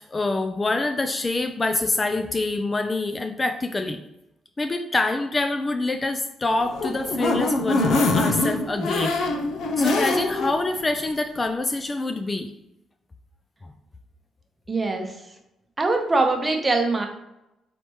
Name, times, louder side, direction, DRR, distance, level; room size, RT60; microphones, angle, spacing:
voice 1, 0.1-4.0 4.6-9.1 9.8-12.5, left 2 dB, 25° left, 7 dB, 0.3 m, -26 dB
sound 1, 6.6-10.5 10.9-11.0 11.4-11.5, left 2 dB, 75° left, 0.5 m, -23 dB
voice 2, 14.7-15.2 15.8-17.1, right 3 dB, 25° right, 4 dB, 0.7 m, -22 dB
4.2 x 3.3 x 3.0 m, 0.87 s
cardioid pair, 90°, 0 cm